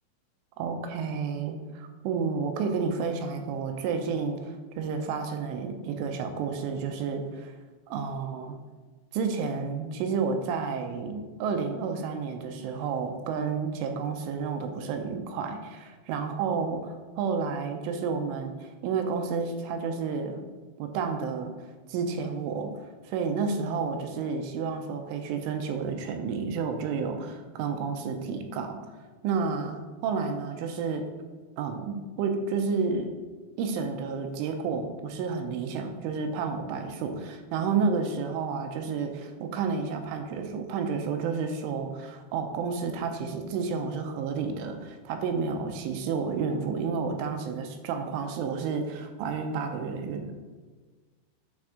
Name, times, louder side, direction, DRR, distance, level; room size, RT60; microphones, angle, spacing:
voice 1, 0.6-7.5 7.9-8.6 9.1-16.8 17.2-20.4 20.8-21.5 21.9-22.7 23.0-28.8 29.2-31.0 31.6-33.1 33.6-50.3, right 5 dB, 85° right, 4 dB, 3.2 m, -31 dB
8.9 x 3.5 x 6.4 m, 1.4 s
omnidirectional pair, 5.5 m